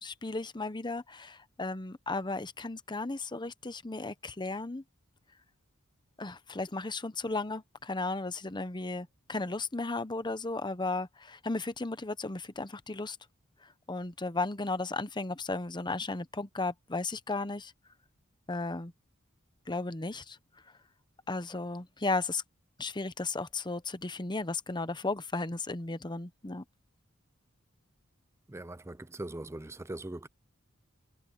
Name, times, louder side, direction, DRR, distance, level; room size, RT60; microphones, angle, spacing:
voice 1, 0.0-4.8 6.2-13.2 13.9-17.7 18.5-18.9 19.7-20.4 21.3-22.4 22.8-26.6, left 3 dB, 20° left, 0.9 m, -35 dB
voice 2, 28.5-30.3, right 1 dB, 15° right, 0.6 m, -41 dB
head